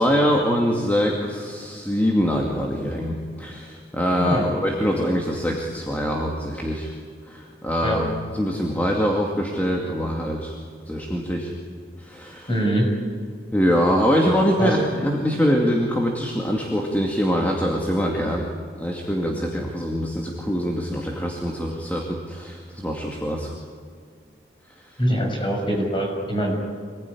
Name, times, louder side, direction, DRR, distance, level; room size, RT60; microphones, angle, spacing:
voice 1, 0.0-6.9 7.3-8.1 8.3-10.5 10.9-11.5 12.0-12.5 13.5-18.5 18.8-23.5, equal, 10° left, -1 dB, 2.3 m, -23 dB
voice 2, 12.5-12.9 14.6-14.7 25.0-26.5, equal, 25° left, 1 dB, 6.6 m, -23 dB
26.5 x 20.5 x 9.9 m, 2.1 s
head